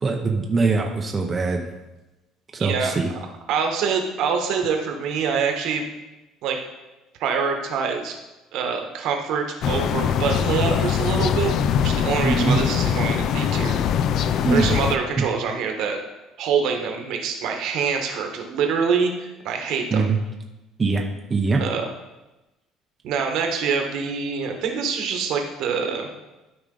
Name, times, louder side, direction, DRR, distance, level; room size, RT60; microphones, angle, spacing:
voice 1, 0.0-1.6 2.5-3.1 12.2-12.6 14.4-14.8 15.2-15.3 19.9-20.2 20.8-21.0 21.3-21.6, right 3 dB, 20° right, 1 dB, 0.7 m, -22 dB
voice 2, 2.6-2.9 3.5-5.8 6.4-6.6 7.2-8.2 8.5-11.5 11.8-13.8 14.5-16.0 16.4-20.0 21.6-21.9 23.0-26.1, right 6 dB, 60° right, 4 dB, 1.3 m, -25 dB
sound 1, 9.6-15.0, left 8 dB, 50° left, 0.4 m, -22 dB
12.5 x 4.9 x 3.9 m, 1.0 s
cardioid pair, 155°, 0 cm